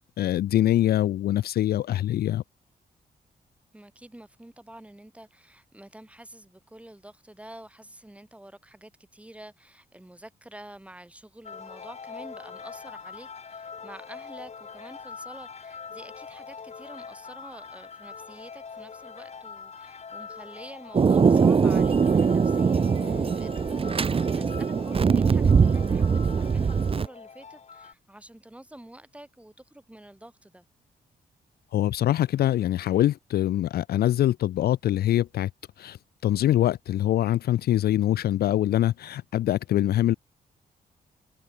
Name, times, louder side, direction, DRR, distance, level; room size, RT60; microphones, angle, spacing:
voice 1, 0.2-2.4 31.7-35.5 35.8-40.1, left 13 dB, 75° left, 0.4 m, -24 dB
voice 2, 3.7-30.7, right 1 dB, 10° right, 5.2 m, -48 dB
sound 1, 11.4-27.9, left 5 dB, 40° left, 6.2 m, -43 dB
Thunder, 20.9-27.1, right 5 dB, 35° right, 1.0 m, -22 dB
open air
cardioid pair, 115°, 16 cm